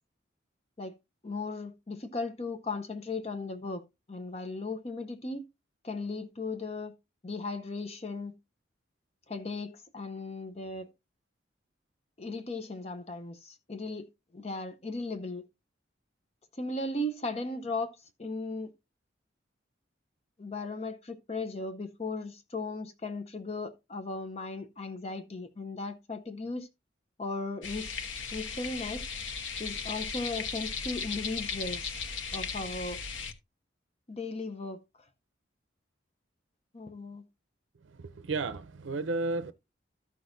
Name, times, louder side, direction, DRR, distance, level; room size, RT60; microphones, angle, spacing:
voice 1, 1.2-3.8 4.1-5.4 5.8-6.9 7.2-8.3 9.3-10.9 12.2-14.1 14.3-15.4 16.5-18.7 20.4-26.7 27.2-27.9 28.3-29.1 29.6-32.0 32.3-33.0 34.1-34.8 36.7-37.2, left 2 dB, 35° left, 0.6 m, -37 dB
sound 1, 27.6-33.3, left 5 dB, 80° left, 1.0 m, -36 dB
voice 2, 37.8-39.5, right 3 dB, 80° right, 0.5 m, -33 dB
14.0 x 6.1 x 2.6 m
head